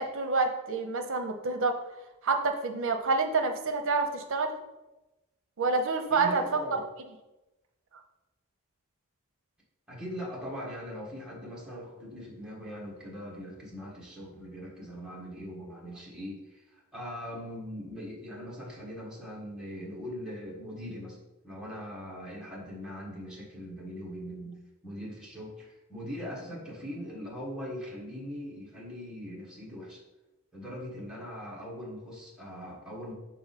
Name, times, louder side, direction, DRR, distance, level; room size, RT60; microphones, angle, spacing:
voice 1, 0.0-1.8 2.2-4.5 5.6-6.6, right 4 dB, 60° right, 6 dB, 0.7 m, -28 dB
voice 2, 6.2-6.8 9.9-21.2 21.4-30.0 30.5-33.1, equal, 5° right, -4 dB, 1.3 m, -41 dB
5.8 x 4.2 x 4.1 m, 1.0 s
head